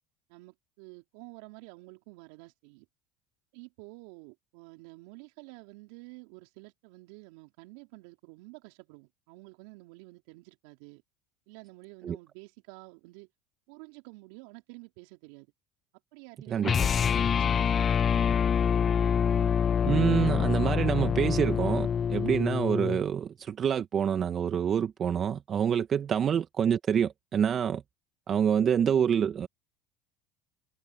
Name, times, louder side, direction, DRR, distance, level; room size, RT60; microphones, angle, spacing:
voice 1, 0.3-2.9 3.5-11.0 11.5-13.3 13.7-15.5 16.1-18.3, right 25 dB, 75° right, 4.5 m, -50 dB
voice 2, 16.5-16.9 19.8-27.8 28.3-29.5, right 8 dB, 40° right, 1.5 m, -27 dB
sound 1, 16.6-23.0, left 7 dB, 35° left, 0.5 m, -26 dB
supercardioid pair, 95°, 0 cm